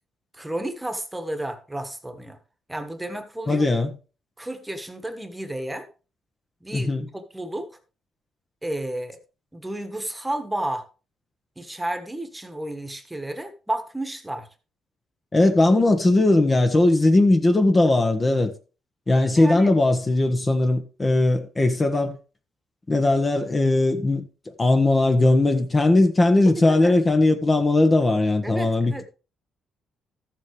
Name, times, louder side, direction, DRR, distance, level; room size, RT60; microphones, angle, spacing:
voice 1, 0.4-2.4 2.7-3.7 4.4-5.9 6.6-7.7 8.6-9.2 9.5-10.8 11.6-14.5 19.4-19.7 26.4-26.9 28.4-29.0, right 1 dB, 10° right, 1.5 m, -32 dB
voice 2, 3.5-3.9 6.7-7.1 15.3-18.5 19.1-22.1 22.9-24.3 24.6-29.0, left 2 dB, 25° left, 1.2 m, -19 dB
13.5 x 7.4 x 3.4 m
cardioid pair, 90°, 0 cm